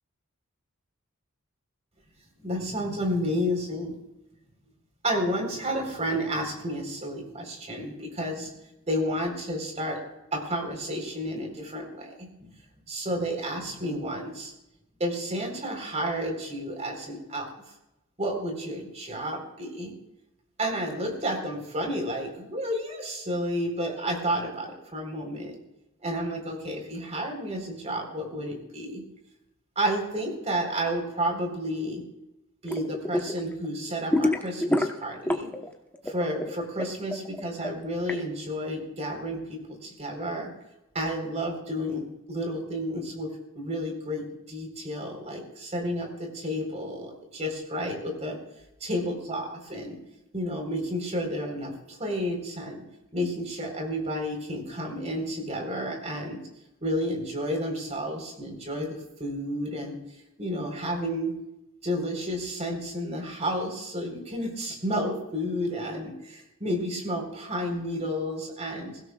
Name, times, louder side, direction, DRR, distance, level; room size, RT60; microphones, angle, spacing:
voice 1, 2.4-4.0 5.0-8.5 8.9-10.0 10.3-12.5 12.9-14.5 15.0-17.5 18.2-19.9 20.6-25.6 26.0-29.0 29.8-32.0 32.6-35.5 36.0-40.5 40.9-43.3 43.5-48.4 48.8-50.0 50.3-52.8 53.1-56.4 56.8-60.0 60.4-61.3 61.8-69.0, equal, 30° right, 2 dB, 4.1 m, -31 dB
sound 1, 32.6-33.4 33.6-35.7 35.9-38.2, left 1 dB, 10° left, 1.0 m, -27 dB
22.5 x 16.5 x 2.4 m, 0.88 s
head